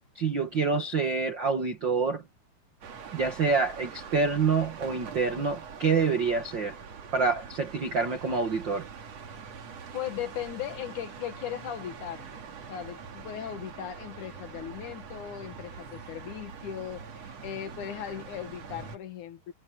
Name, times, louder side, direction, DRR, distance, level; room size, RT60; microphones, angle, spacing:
voice 1, 0.1-2.2 3.1-6.8 7.1-8.9, right 4 dB, 75° right, 1.0 m, -27 dB
sound 1, 2.8-19.0, right 6 dB, 45° right, 2.8 m, -44 dB
voice 2, 9.9-19.5, left 10 dB, 60° left, 2.4 m, -38 dB
omnidirectional pair, 4.9 m